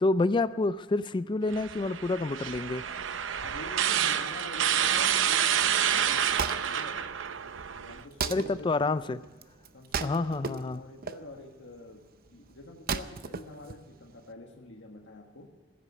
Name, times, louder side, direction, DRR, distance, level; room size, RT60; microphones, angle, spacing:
voice 1, 0.0-2.9 8.3-9.2 10.0-10.8, left 3 dB, 25° left, 13 dB, 0.4 m, -28 dB
sound 1, 1.5-8.0, right 9 dB, 90° right, 0.7 m, -28 dB
voice 2, 3.4-5.7 5.9-7.0 7.8-9.0 9.7-12.0 12.3-15.5, left 2 dB, 75° left, 1 dB, 1.5 m, -46 dB
Wood, 6.0-14.3, right 6 dB, 50° right, 0.6 m, -37 dB
15.0 x 8.3 x 9.4 m, 1.2 s
head